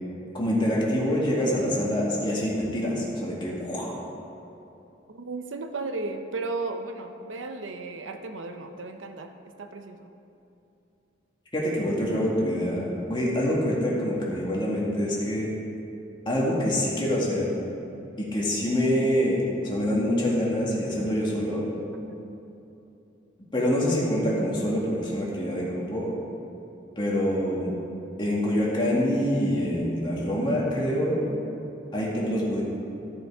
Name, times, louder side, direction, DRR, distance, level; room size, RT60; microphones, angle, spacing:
voice 1, 0.3-4.0 11.5-15.5 16.3-17.5 18.2-21.7 23.5-26.1 27.0-27.7 28.2-31.2 31.9-32.6, equal, 25° left, -5 dB, 2.0 m, -25 dB
voice 2, 5.1-10.1 22.0-22.4 31.3-31.7, right 3 dB, 85° right, 6 dB, 0.7 m, -35 dB
14.0 x 6.8 x 4.8 m, 2.8 s
head